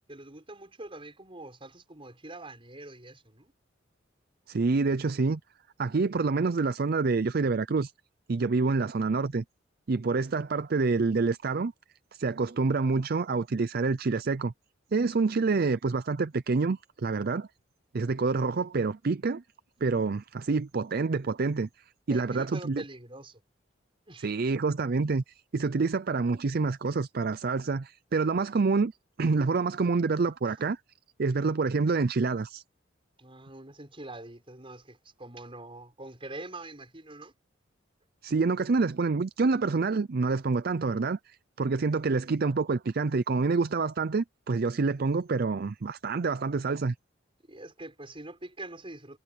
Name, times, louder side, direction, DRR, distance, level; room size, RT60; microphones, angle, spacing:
voice 1, 0.1-3.5 8.4-8.8 22.1-23.4 24.1-24.3 30.4-30.6 33.2-37.3 47.5-49.2, right 2 dB, 30° right, 5.8 m, -44 dB
voice 2, 4.5-5.4 5.8-7.9 8.3-9.4 9.9-11.7 12.1-14.5 14.9-17.5 17.9-19.4 19.8-21.7 22.1-22.8 24.2-28.9 29.2-30.8 31.2-32.6 38.2-46.9, right 4 dB, 50° right, 0.5 m, -27 dB
head